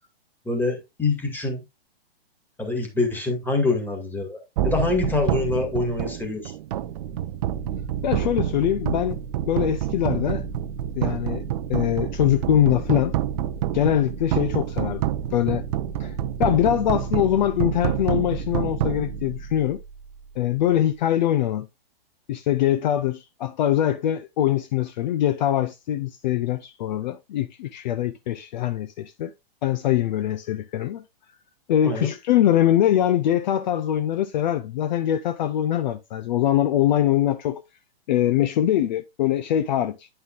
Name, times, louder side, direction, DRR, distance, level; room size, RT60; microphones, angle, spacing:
voice 1, 0.5-1.6 2.6-6.5 31.8-32.1, left 3 dB, 5° left, 2.1 m, -25 dB
sound 1, 4.6-19.9, right 10 dB, 40° right, 0.7 m, -28 dB
voice 2, 8.0-9.2 9.5-10.5 11.0-11.4 11.7-13.2 13.7-15.6 16.0-19.8 20.4-21.7 22.3-29.3 29.6-31.0 31.7-37.6 38.1-40.1, left 11 dB, 45° left, 0.6 m, -23 dB
9.7 x 5.6 x 2.5 m
hypercardioid pair, 130°, 30 cm